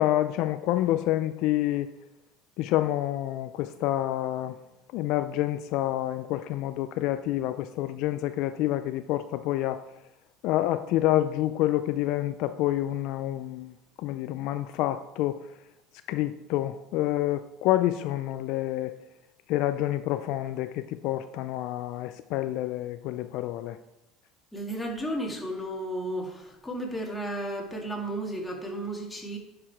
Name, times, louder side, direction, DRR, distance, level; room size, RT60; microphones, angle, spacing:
voice 1, 0.0-1.9 2.6-4.5 4.9-9.8 10.4-13.7 14.0-15.4 16.1-18.9 19.5-23.8, left 14 dB, 65° left, 11 dB, 0.4 m, -28 dB
voice 2, 24.5-29.4, right 1 dB, 10° left, 0 dB, 2.0 m, -33 dB
9.9 x 4.9 x 4.7 m, 0.93 s
supercardioid pair, 105°, 0 cm